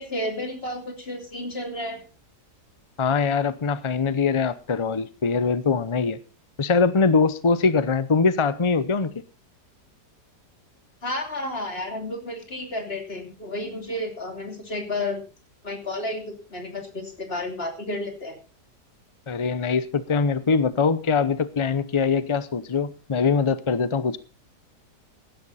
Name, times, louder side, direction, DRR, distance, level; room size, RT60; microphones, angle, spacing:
voice 1, 0.0-2.0 11.0-15.2 15.6-18.4, left 1 dB, 35° left, 4 dB, 3.2 m, -31 dB
voice 2, 3.0-6.2 6.6-9.1 19.3-24.2, left 5 dB, 50° left, 15 dB, 0.3 m, -22 dB
16.0 x 11.5 x 4.2 m, 0.31 s
omnidirectional pair, 1.8 m